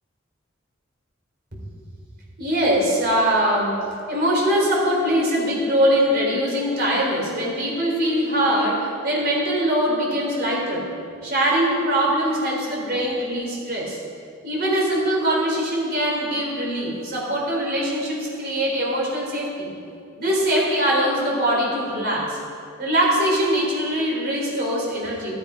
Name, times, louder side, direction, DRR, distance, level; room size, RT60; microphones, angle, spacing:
voice 1, 2.4-3.8 4.1-10.9 11.2-14.0 14.4-19.7 20.2-22.4 22.8-25.3, equal, 55° right, -3 dB, 3.3 m, -22 dB
13.0 x 9.5 x 4.9 m, 2.3 s
head